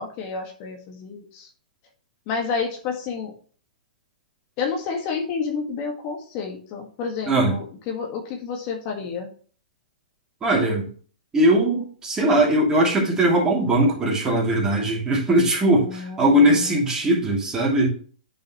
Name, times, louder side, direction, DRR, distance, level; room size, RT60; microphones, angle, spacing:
voice 1, 0.0-1.5 2.3-3.3 4.6-9.3 15.7-16.9, left 5 dB, 40° left, 2 dB, 1.6 m, -30 dB
voice 2, 10.4-10.9 11.3-17.9, right 1 dB, 15° right, -3 dB, 2.8 m, -20 dB
9.1 x 5.4 x 3.0 m, 0.43 s
hypercardioid pair, 130°, 5 cm